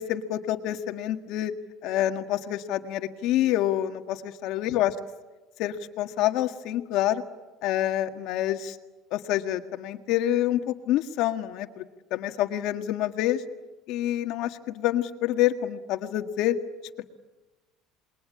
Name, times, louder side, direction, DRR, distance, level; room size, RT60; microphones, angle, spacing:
voice 1, 0.0-1.5 1.8-4.9 5.6-7.2 7.6-8.8 9.1-11.8 12.1-13.4 13.9-16.6 17.0-17.1, left 13 dB, 60° left, 6 dB, 1.7 m, -27 dB
28.0 x 21.5 x 8.8 m, 1.1 s
cardioid pair, 150°, 0 cm